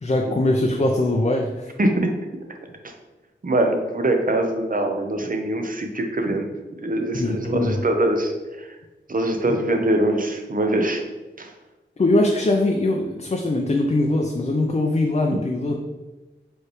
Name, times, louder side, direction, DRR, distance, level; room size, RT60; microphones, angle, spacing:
voice 1, 0.0-1.7 7.1-7.8 12.0-15.7, left 2 dB, 35° left, 1 dB, 0.5 m, -21 dB
voice 2, 1.8-2.1 2.8-2.9 3.4-8.8 9.1-11.0 11.4-11.5 15.3-15.4, right 1 dB, 45° right, 4 dB, 0.7 m, -23 dB
4.7 x 3.2 x 3.1 m, 1.1 s
cardioid pair, 45°, 20 cm